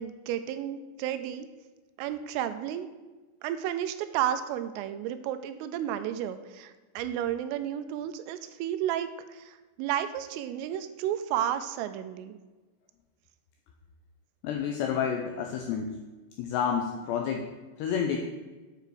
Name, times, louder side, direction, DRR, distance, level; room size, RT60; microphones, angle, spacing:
voice 1, 0.0-1.5 2.0-2.9 3.4-12.4, right 10 dB, 90° right, 9 dB, 3.2 m, -32 dB
voice 2, 14.4-16.0 16.4-17.4 17.8-18.2, left 7 dB, 85° left, 3 dB, 2.4 m, -29 dB
9.2 x 4.9 x 6.5 m, 1.2 s
omnidirectional pair, 5.7 m